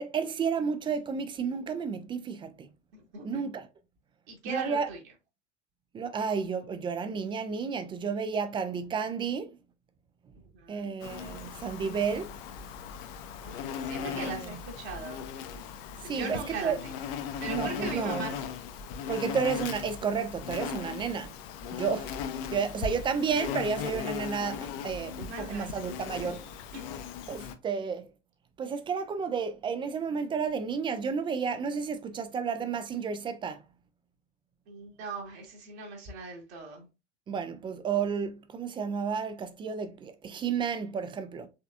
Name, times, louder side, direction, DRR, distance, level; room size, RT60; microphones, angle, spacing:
voice 1, 0.0-2.7 3.2-3.7 4.4-4.9 5.9-9.6 10.7-12.3 14.0-14.5 16.0-16.8 17.5-18.3 19.1-21.3 21.7-22.2 22.5-26.4 27.3-28.1 28.6-33.6 37.3-41.5, right 6 dB, 15° right, 0.4 m, -32 dB
voice 2, 2.9-3.4 4.3-5.0 10.5-10.9 13.4-15.2 16.1-16.9 17.4-18.6 25.3-25.8 26.2-26.4 26.7-26.9 34.7-36.9, right 4 dB, 55° right, 1.7 m, -40 dB
Insect, 11.0-27.5, left 7 dB, 50° left, 0.7 m, -38 dB
5.1 x 3.4 x 2.4 m
figure-of-eight pair, 75°, 38 cm